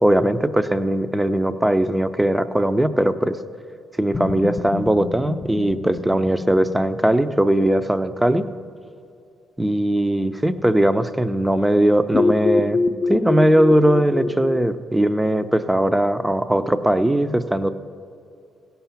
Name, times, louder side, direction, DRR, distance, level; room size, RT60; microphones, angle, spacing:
voice 1, 0.0-3.4 4.0-8.5 9.6-12.8 13.1-17.7, right 1 dB, 10° right, 11 dB, 0.5 m, -19 dB
sound 1, 4.1-8.1 12.1-14.6, left 3 dB, 40° left, 0.5 m, -25 dB
16.0 x 5.7 x 5.8 m, 2.5 s
cardioid pair, 90°, 0 cm